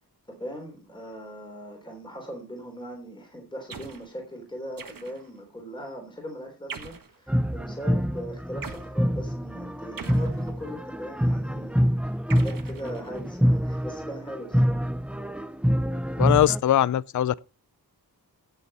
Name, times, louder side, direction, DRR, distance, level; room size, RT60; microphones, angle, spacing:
voice 1, 0.3-11.8 12.3-14.8, equal, 10° left, 3.4 m, -39 dB
sound 1, 3.7-4.1 4.8-5.4 6.7-7.2 8.6-8.9 10.0-10.8 12.3-13.4, right 5 dB, 60° right, 1.5 m, -42 dB
sound 2, 7.3-16.6, equal, 5° right, 0.5 m, -26 dB
voice 2, 16.2-17.4, left 11 dB, 50° left, 0.4 m, -21 dB
15.5 x 6.9 x 4.1 m
wide cardioid pair, 125°, 38 cm